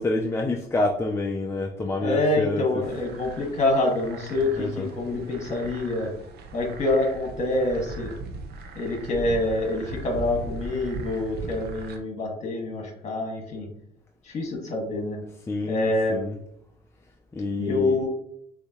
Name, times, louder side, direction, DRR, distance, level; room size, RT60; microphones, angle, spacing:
voice 1, 0.0-2.6 4.6-4.9 15.5-16.4 17.3-18.0, left 2 dB, 15° left, 2 dB, 0.5 m, -28 dB
voice 2, 2.0-6.1 6.5-8.1 8.7-13.7 14.2-15.2 15.7-16.3 17.6-18.1, left 2 dB, 40° left, 1 dB, 1.7 m, -26 dB
sound 1, 2.8-12.0, right 3 dB, 70° right, 0.7 m, -39 dB
6.5 x 2.8 x 3.0 m, 0.72 s
cardioid pair, 110°, 17 cm